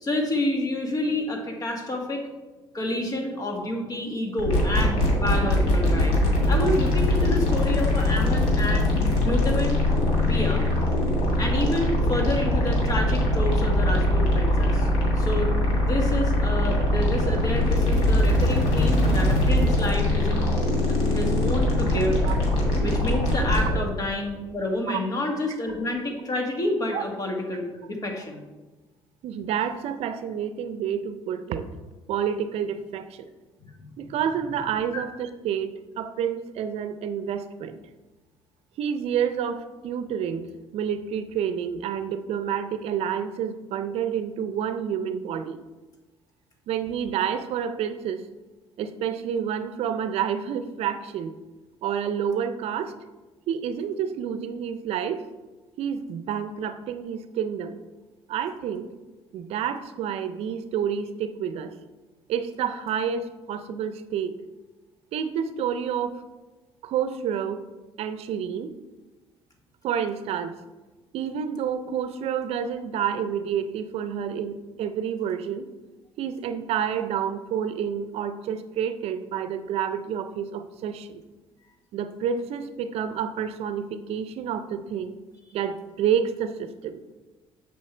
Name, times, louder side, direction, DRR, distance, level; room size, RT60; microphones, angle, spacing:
voice 1, 0.0-2.3 2.7-6.2 6.5-8.9 9.2-9.8 10.2-10.7 11.4-14.9 15.2-15.5 15.8-20.5 20.9-22.2 22.8-28.4 33.8-34.1, left 1 dB, 35° left, 2 dB, 1.7 m, -29 dB
sound 1, 4.4-23.8, left 1 dB, 90° left, 2.4 m, -22 dB
voice 2, 29.2-31.7 32.1-33.3 34.0-37.8 38.8-40.5 40.7-45.6 46.7-48.2 48.8-51.3 51.8-52.9 53.5-55.2 55.8-57.8 58.3-58.9 59.3-61.7 62.3-64.3 65.1-66.2 66.8-67.7 68.0-68.7 69.8-70.6 71.1-75.7 76.2-81.2 81.9-85.2 85.5-87.0, right 8 dB, 70° right, 10 dB, 0.6 m, -29 dB
7.5 x 5.6 x 4.4 m, 1.2 s
cardioid pair, 95°, 11 cm